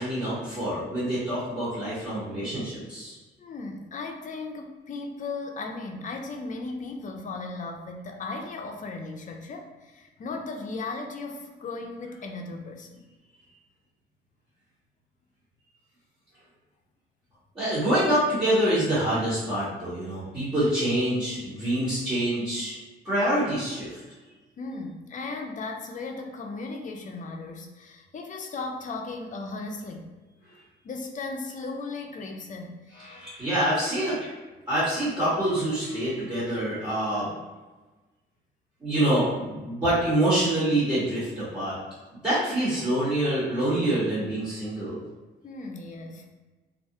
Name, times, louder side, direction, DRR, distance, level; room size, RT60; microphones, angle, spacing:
voice 1, 0.0-3.1 17.5-22.8 23.0-24.0 32.9-34.3 34.7-37.3 38.8-41.8 42.1-45.0, right 1 dB, 20° right, -12 dB, 1.1 m, -26 dB
voice 2, 3.4-13.0 24.6-30.1 30.8-32.8 45.4-46.3, left 3 dB, 40° left, 3 dB, 0.4 m, -36 dB
2.4 x 2.1 x 2.7 m, 1.2 s
cardioid pair, 90°, 20 cm